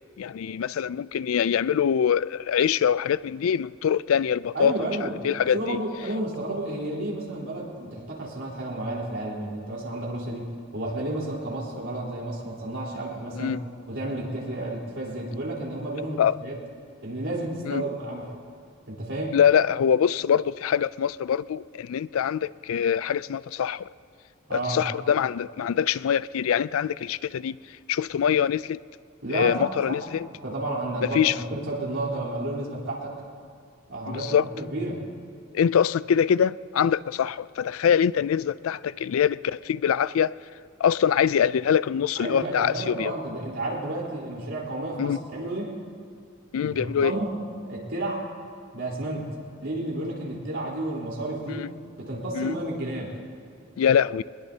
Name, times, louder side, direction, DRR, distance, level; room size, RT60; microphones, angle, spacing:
voice 1, 0.2-4.7 5.2-5.8 13.4-13.7 16.2-16.4 17.6-17.8 19.3-23.9 24.5-27.6 27.9-28.8 29.3-30.3 31.0-31.3 34.1-34.5 35.5-40.3 40.8-43.1 45.0-45.2 46.5-47.1 51.5-51.7 52.3-52.5 53.8-54.2, left 8 dB, 80° left, 19 dB, 0.3 m, -24 dB
voice 2, 4.5-10.4 10.7-13.6 13.9-16.5 17.0-18.3 18.9-19.4 24.5-24.8 29.2-30.0 30.4-33.1 33.9-35.0 42.2-45.8 46.6-46.7 47.0-47.4 47.6-48.3 48.7-49.3 49.6-51.7 52.0-53.1, right 1 dB, 65° right, -3 dB, 3.9 m, -31 dB
22.0 x 20.5 x 2.8 m, 2.3 s
head